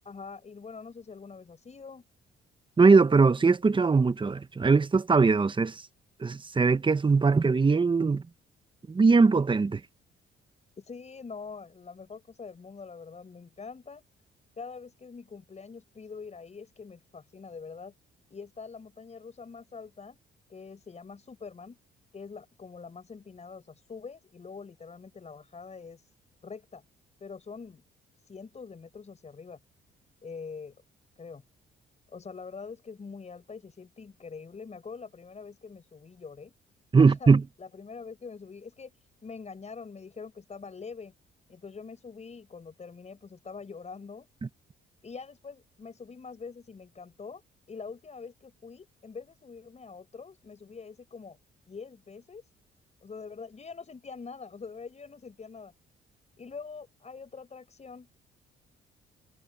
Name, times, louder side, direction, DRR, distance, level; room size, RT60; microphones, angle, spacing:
voice 1, 0.0-2.0 10.8-14.0 14.6-17.9 18.3-20.2 20.5-21.8 22.1-26.0 26.4-26.8 27.2-27.8 28.3-29.6 30.2-30.7 31.2-31.4 32.1-36.5 37.0-37.3 37.6-38.9 39.2-41.1 41.5-44.3 45.0-47.4 47.7-51.4 51.7-52.4 53.0-55.7 56.4-58.1, left 5 dB, 35° left, 6.0 m, -44 dB
voice 2, 2.8-5.8 6.2-8.2 8.9-9.8 36.9-37.4, right 4 dB, 25° right, 1.0 m, -21 dB
cardioid pair, 90°, 20 cm